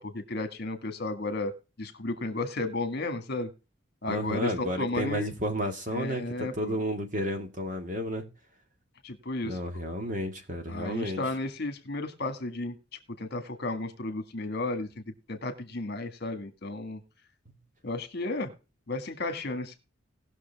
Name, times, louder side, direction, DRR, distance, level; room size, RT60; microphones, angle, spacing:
voice 1, 0.0-1.5 1.8-3.5 4.0-5.3 5.9-6.8 9.0-9.6 10.7-12.8 13.2-14.9 15.3-17.0 17.8-18.5 18.9-19.8, left 2 dB, 50° left, 1.8 m, -33 dB
voice 2, 4.1-8.2 9.4-11.2, equal, 40° right, 2.0 m, -32 dB
19.0 x 6.4 x 3.4 m
head